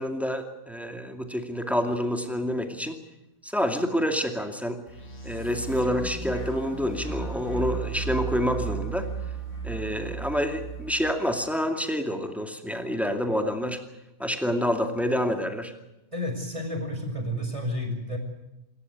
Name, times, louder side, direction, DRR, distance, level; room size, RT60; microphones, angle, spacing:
voice 1, 0.0-3.0 3.4-4.8 5.2-9.1 9.6-13.8 14.2-15.7, equal, ahead, 5 dB, 2.3 m, -28 dB
sound 1, 4.9-11.1, right 4 dB, 85° left, 3.3 m, -34 dB
voice 2, 16.1-18.2, left 1 dB, 25° right, 4 dB, 5.4 m, -31 dB
27.0 x 14.0 x 9.5 m, 0.93 s
omnidirectional pair, 1.4 m